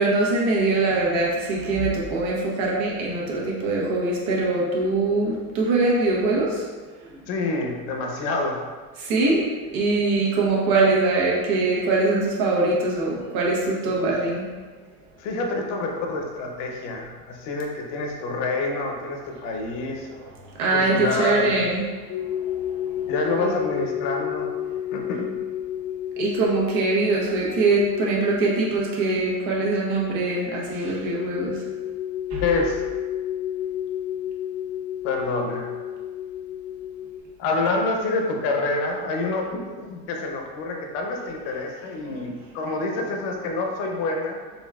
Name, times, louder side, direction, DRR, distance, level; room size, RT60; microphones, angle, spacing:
voice 1, 0.0-6.7 7.0-7.1 9.0-9.5 9.7-14.4 20.5-21.9 22.7-22.8 23.4-23.6 26.2-31.6 32.3-32.4 42.1-42.2, right 3 dB, 55° right, -4 dB, 1.2 m, -22 dB
voice 2, 7.3-8.6 14.0-14.1 15.2-20.3 20.7-21.6 23.1-24.5 24.9-25.3 32.4-32.8 35.0-35.7 37.4-44.4, left 3 dB, 60° left, 1 dB, 0.8 m, -27 dB
sound 1, 22.1-37.2, left 11 dB, 25° left, 0.6 m, -32 dB
4.1 x 3.5 x 2.4 m, 1.4 s
supercardioid pair, 125°, 43 cm